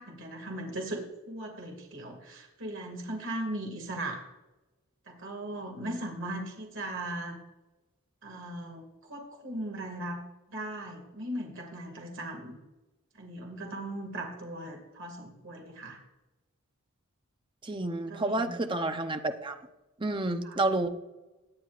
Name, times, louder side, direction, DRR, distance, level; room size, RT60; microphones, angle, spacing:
voice 1, 0.0-4.2 5.1-7.4 8.2-8.8 9.1-10.2 10.5-12.6 13.2-16.0 18.1-18.6 20.4-20.5, right 1 dB, 60° right, 2 dB, 2.4 m, -38 dB
voice 2, 17.6-19.6 20.0-20.9, right 2 dB, 25° right, 6 dB, 0.9 m, -30 dB
18.5 x 10.0 x 2.6 m, 1.1 s
head